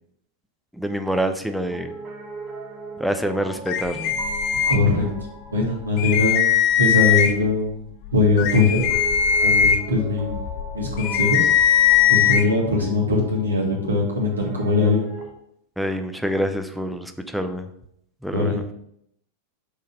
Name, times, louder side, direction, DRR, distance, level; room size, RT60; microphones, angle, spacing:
voice 1, 0.8-1.9 3.0-4.1 15.8-17.7 18.2-18.7, equal, ahead, 7 dB, 0.5 m, -26 dB
Piano, 1.6-15.3, right 2 dB, 15° right, 1.8 m, -39 dB
sound 1, 3.7-5.2 5.6-5.7 6.0-7.5 8.1-12.4, left 9 dB, 45° left, 0.6 m, -20 dB
voice 2, 4.7-5.0 5.5-6.5 6.8-7.8 8.1-8.8 9.4-10.3 10.7-11.5 12.1-15.1 18.3-18.6, left 3 dB, 75° right, -1 dB, 1.8 m, -21 dB
6.2 x 4.1 x 5.2 m, 0.74 s
figure-of-eight pair, 90°, 0 cm